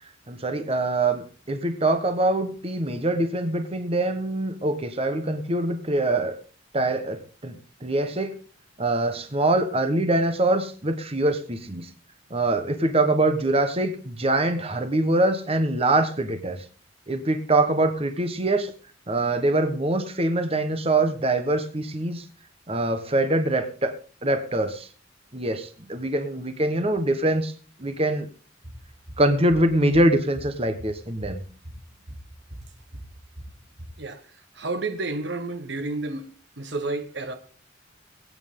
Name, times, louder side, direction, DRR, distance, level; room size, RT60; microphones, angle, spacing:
voice 1, 0.3-6.4 6.7-8.4 8.8-11.9 12.3-16.6 17.1-18.7 19.1-22.2 22.7-23.9 24.2-24.9 25.3-27.5 27.8-28.3 29.2-31.4, right 2 dB, 30° right, 1.2 m, -24 dB
sound 1, 28.6-34.0, equal, 85° right, 5.1 m, -43 dB
voice 2, 34.0-36.3 36.6-37.3, right 2 dB, 60° right, 1.2 m, -31 dB
22.0 x 8.9 x 3.8 m
head